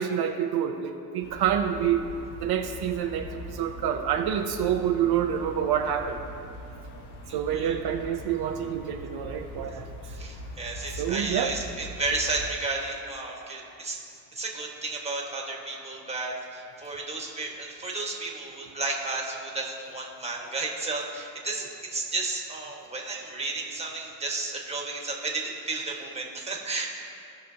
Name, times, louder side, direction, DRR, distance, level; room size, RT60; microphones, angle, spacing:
voice 1, 0.0-2.1 2.4-6.2 7.3-9.9 11.0-11.5, right 9 dB, 75° right, 4 dB, 0.7 m, -27 dB
sound 1, 1.2-12.5, equal, 85° left, 1.3 m, -41 dB
voice 2, 10.1-14.0 14.3-26.9, right 3 dB, 15° right, -1 dB, 1.5 m, -33 dB
17.5 x 6.1 x 2.8 m, 2.6 s
cardioid pair, 125°, 39 cm